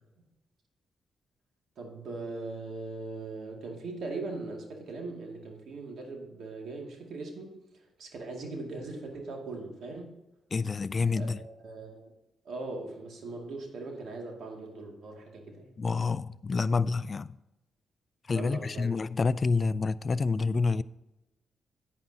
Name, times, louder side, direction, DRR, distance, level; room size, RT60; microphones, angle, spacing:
voice 1, 1.8-10.2 11.1-12.1 12.4-15.8 18.3-18.9, right 3 dB, 75° right, 2.3 m, -40 dB
voice 2, 10.5-11.4 15.8-17.4 18.3-20.8, left 4 dB, 35° left, 0.3 m, -28 dB
11.0 x 9.1 x 2.8 m
cardioid pair, 95°, 0 cm